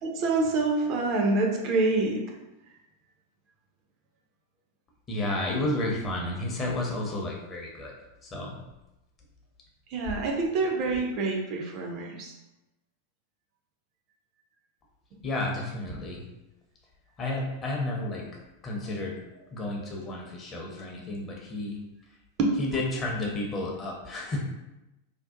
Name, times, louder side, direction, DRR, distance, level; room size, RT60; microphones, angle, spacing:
voice 1, 0.0-2.2 9.9-12.3 19.7-19.9 20.8-20.9 22.4-22.5, right 3 dB, 40° right, 1 dB, 0.4 m, -26 dB
voice 2, 5.1-7.9 8.2-8.6 15.2-16.2 17.2-18.3 18.6-19.2 19.5-21.8 22.6-24.4, left 2 dB, 25° left, -1 dB, 0.6 m, -31 dB
2.6 x 2.1 x 2.4 m, 0.95 s
figure-of-eight pair, 90°, 0 cm